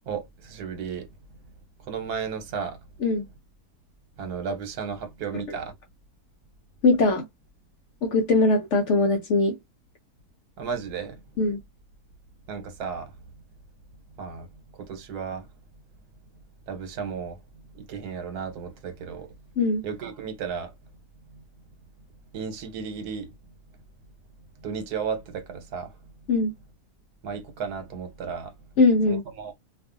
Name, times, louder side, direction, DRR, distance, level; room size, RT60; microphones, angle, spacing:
voice 1, 0.1-1.1 1.9-2.8 4.2-5.7 10.6-11.2 12.5-13.1 14.2-14.5 14.8-15.5 16.7-17.4 17.7-19.3 19.8-20.7 22.3-23.3 24.6-25.9 27.2-28.5 29.1-29.5, right 6 dB, 80° right, 1.3 m, -34 dB
voice 2, 6.8-7.2 8.0-9.6 11.4-11.6 19.6-19.8 26.3-26.5 28.8-29.2, left 3 dB, 65° left, 0.8 m, -21 dB
2.5 x 2.4 x 2.5 m
omnidirectional pair, 1.7 m